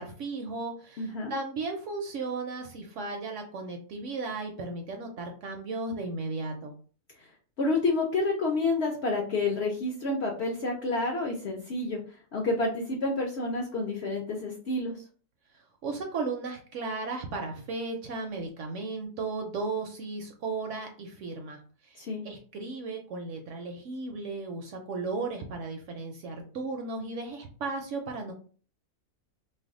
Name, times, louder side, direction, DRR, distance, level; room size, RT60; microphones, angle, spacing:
voice 1, 0.0-6.7 15.5-22.0 22.2-28.3, right 3 dB, 70° right, 3 dB, 0.7 m, -35 dB
voice 2, 1.0-1.3 7.6-12.0 12.3-15.0 22.0-22.2, left 2 dB, 65° left, 0 dB, 0.7 m, -29 dB
2.5 x 2.2 x 3.5 m, 0.42 s
omnidirectional pair, 1.6 m